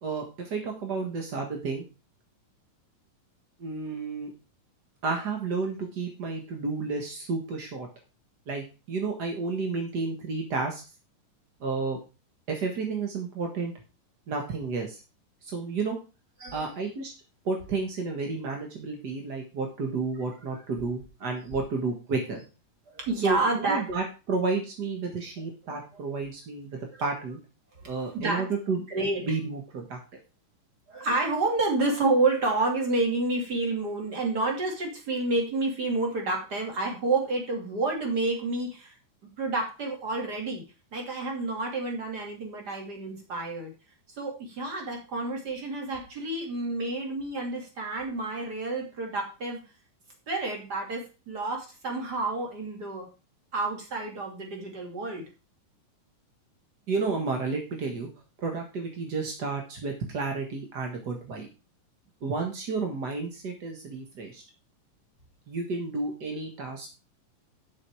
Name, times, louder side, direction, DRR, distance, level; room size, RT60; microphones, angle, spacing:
voice 1, 0.0-1.8 3.6-4.3 5.0-7.9 8.5-10.8 11.6-12.0 12.5-13.7 14.3-15.0 15.4-16.0 16.5-17.1 17.4-22.4 23.2-23.4 23.7-27.4 27.8-28.8 29.2-30.0 56.9-58.1 58.4-61.5 62.2-64.4 65.5-66.9, right 4 dB, 45° right, 2 dB, 1.3 m, -31 dB
voice 2, 22.9-23.8 25.7-26.0 26.8-26.9 27.8-28.4 28.9-29.3 30.9-38.9 39.4-40.6 40.9-43.7 44.2-49.6 50.3-53.1 53.5-55.3, right 2 dB, 30° right, 1 dB, 2.9 m, -29 dB
8.9 x 7.2 x 4.8 m, 0.31 s
omnidirectional pair, 3.9 m